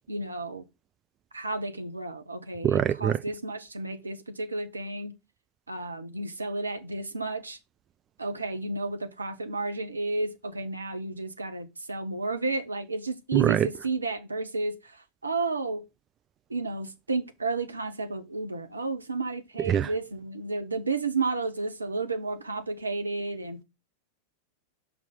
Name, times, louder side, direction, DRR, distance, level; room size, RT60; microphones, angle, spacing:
voice 1, 0.1-0.7 1.3-5.2 5.7-7.6 8.2-15.8 16.5-23.6, right 3 dB, 80° right, 1.0 m, -32 dB
voice 2, 2.6-3.2 13.3-13.7 19.7-19.9, right 9 dB, 30° right, 0.3 m, -23 dB
6.0 x 5.6 x 6.4 m
figure-of-eight pair, 90°, 0 cm